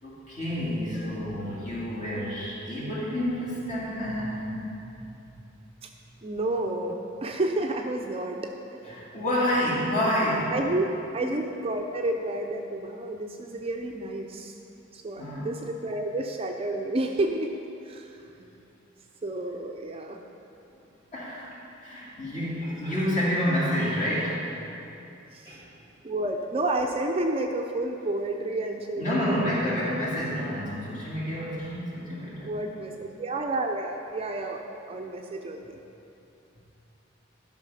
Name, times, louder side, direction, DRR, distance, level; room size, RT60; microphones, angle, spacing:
voice 1, 0.0-4.7 5.0-5.1 8.9-10.6 11.2-11.3 15.2-15.5 21.1-21.5 21.8-24.4 25.4-25.6 29.0-32.5, equal, 40° left, -7 dB, 2.4 m, -29 dB
voice 2, 6.2-9.2 10.5-10.9 11.1-14.6 14.9-17.5 17.8-18.6 19.2-20.2 25.3-25.6 26.0-29.6 32.4-35.8, right 2 dB, 30° right, 3 dB, 0.5 m, -30 dB
12.5 x 5.7 x 5.5 m, 2.8 s
head